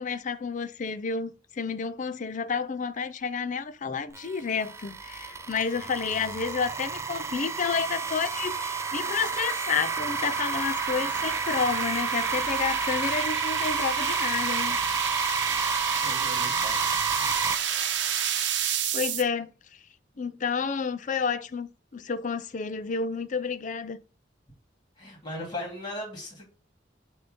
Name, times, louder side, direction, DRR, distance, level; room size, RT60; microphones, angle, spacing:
voice 1, 0.0-14.8 18.9-19.8 20.2-24.0, left 5 dB, 45° left, 0.5 m, -30 dB
sound 1, 4.1-17.5, right 5 dB, 15° right, 0.4 m, -30 dB
sound 2, 5.3-19.2, right 7 dB, 70° right, 0.8 m, -32 dB
voice 2, 16.0-16.9 25.0-26.4, left 1 dB, 25° left, 2.6 m, -37 dB
6.7 x 2.8 x 5.2 m
head